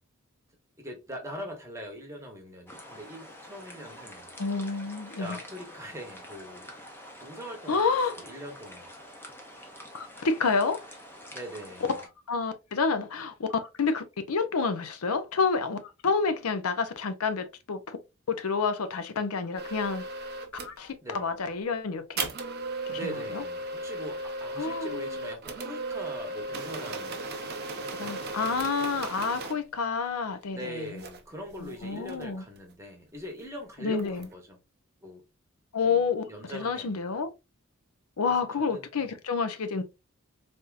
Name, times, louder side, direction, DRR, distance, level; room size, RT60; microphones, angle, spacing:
voice 1, 0.8-4.3 5.2-6.7 7.2-7.8 8.1-8.9 11.3-12.0 21.0-21.3 22.9-27.2 27.8-28.7 30.5-34.6 35.0-35.2 35.8-37.0 38.2-39.2, equal, 15° right, 1.0 m, -42 dB
sound 1, 2.7-12.1, left 1 dB, 10° left, 0.7 m, -47 dB
voice 2, 4.4-5.4 7.7-8.1 9.9-10.9 11.9-18.0 18.3-20.0 20.5-22.3 22.9-23.4 24.6-25.1 28.0-31.0 31.6-32.4 33.8-34.3 35.7-37.3 38.2-39.8, left 5 dB, 80° left, 0.6 m, -29 dB
sound 2, 19.6-20.8 22.2-29.6 31.0-31.2 31.5-32.7 34.0-34.3, right 2 dB, 50° right, 0.6 m, -36 dB
3.4 x 2.7 x 2.4 m
head